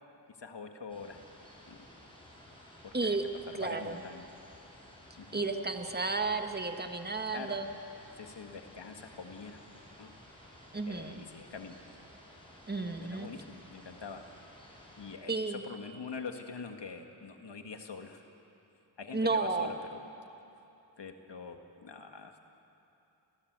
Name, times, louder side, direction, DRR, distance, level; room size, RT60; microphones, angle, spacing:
voice 1, 0.4-1.2 1.7-1.8 2.8-3.2 3.5-4.3 5.2-5.4 7.3-7.6 8.2-9.6 10.0-10.1 10.9-12.0 13.0-14.2 15.0-18.2 19.0-20.0 21.0-22.3, left 5 dB, 65° left, 4 dB, 1.8 m, -44 dB
sound 1, 0.9-15.2, left 1 dB, 10° left, 6.8 m, -55 dB
voice 2, 2.9-3.2 3.5-4.0 5.3-7.7 10.7-11.2 12.7-13.3 15.3-15.6 19.1-19.7, right 3 dB, 20° right, 5 dB, 1.7 m, -32 dB
28.0 x 18.0 x 8.1 m, 2.9 s
wide cardioid pair, 75°, 44 cm